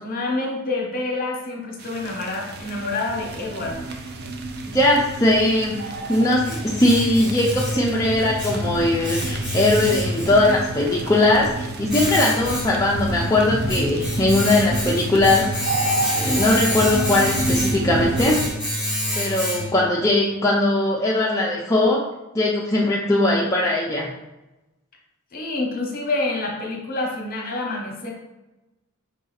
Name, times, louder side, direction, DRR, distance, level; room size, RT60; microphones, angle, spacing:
voice 1, 0.0-3.8 25.3-28.1, left 2 dB, 40° left, 0 dB, 0.9 m, -27 dB
sound 1, 1.8-18.5, right 2 dB, 45° right, 0.5 m, -29 dB
voice 2, 4.7-15.5 16.1-18.5 19.2-22.0 22.3-24.1, left 2 dB, 15° left, -5 dB, 0.4 m, -20 dB
Domestic sounds home sounds, 5.8-20.0, left 1 dB, 5° right, 1.0 m, -29 dB
4.9 x 2.7 x 3.9 m, 1.0 s
head